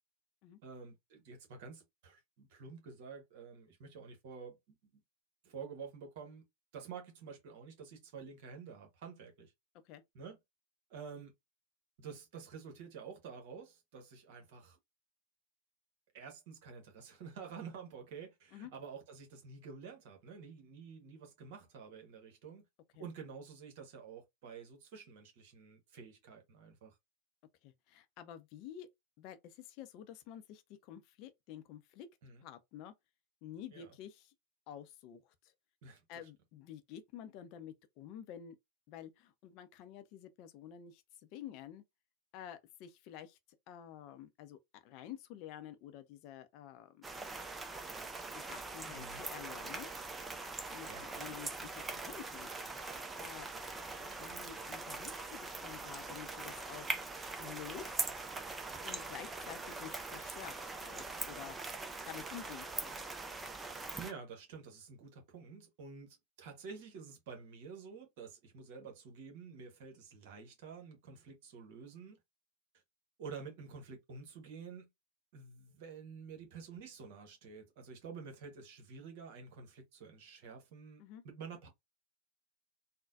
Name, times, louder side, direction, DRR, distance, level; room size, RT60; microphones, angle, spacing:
voice 1, 0.6-4.6 4.9-5.0 5.4-6.4 6.7-9.5 10.1-10.4 10.9-11.3 12.0-14.8 16.1-22.6 23.0-26.9 32.2-32.4 33.7-33.9 35.8-36.0 48.9-49.2 50.9-51.3 62.0-62.1 64.0-72.2 73.2-74.9 75.3-81.7, right 5 dB, 50° right, 1.2 m, -49 dB
voice 2, 27.6-28.9 29.2-32.1 32.4-32.9 33.4-34.3 34.7-35.5 36.1-38.6 38.9-41.8 42.3-43.4 43.7-47.1 48.3-49.9 50.7-50.9 51.2-52.5 53.2-53.5 54.0-58.2 58.8-61.6 62.1-62.9 81.0-81.2, left 10 dB, 40° left, 0.5 m, -50 dB
sound 1, 47.0-64.1, right 3 dB, 15° right, 0.5 m, -42 dB
3.8 x 2.2 x 2.4 m
figure-of-eight pair, 90°, 0 cm